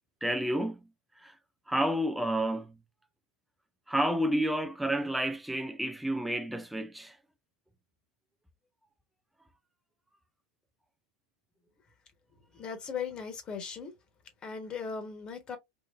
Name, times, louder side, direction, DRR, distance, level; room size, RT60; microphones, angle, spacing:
voice 1, 0.2-0.9 1.2-1.4 1.7-2.8 3.9-7.2, right 1 dB, ahead, 0.4 m, -30 dB
voice 2, 12.5-13.9 14.4-15.6, left 6 dB, 30° left, 1.3 m, -38 dB
3.7 x 2.4 x 2.5 m
hypercardioid pair, 100°, 3 cm